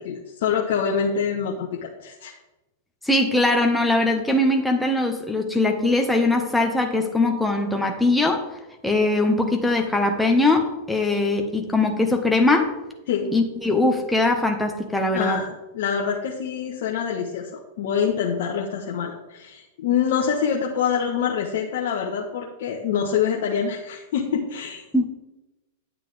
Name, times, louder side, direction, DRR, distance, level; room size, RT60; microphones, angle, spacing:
voice 1, 0.0-2.3 13.1-13.4 15.1-24.8, left 7 dB, 65° left, -1 dB, 1.1 m, -25 dB
voice 2, 3.0-8.4 8.8-12.7 13.3-15.4 24.9-25.1, left 2 dB, 5° left, 2 dB, 1.2 m, -21 dB
9.3 x 8.2 x 3.4 m, 1.0 s
hypercardioid pair, 110°, 0 cm